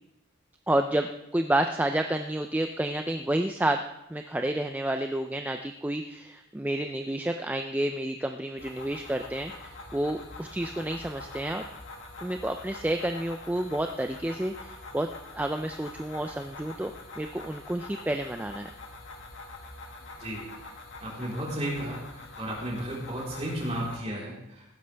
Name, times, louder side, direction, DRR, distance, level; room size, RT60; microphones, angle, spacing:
voice 1, 0.7-3.8 4.1-11.6 12.2-15.1 15.3-16.9 17.2-18.7, right 1 dB, 10° right, 6 dB, 0.3 m, -30 dB
sound 1, 8.6-24.0, left 2 dB, 65° left, 1.8 m, -45 dB
voice 2, 21.0-22.0 22.4-24.7, right 1 dB, 30° right, -5 dB, 4.1 m, -33 dB
15.5 x 12.0 x 3.4 m, 0.88 s
head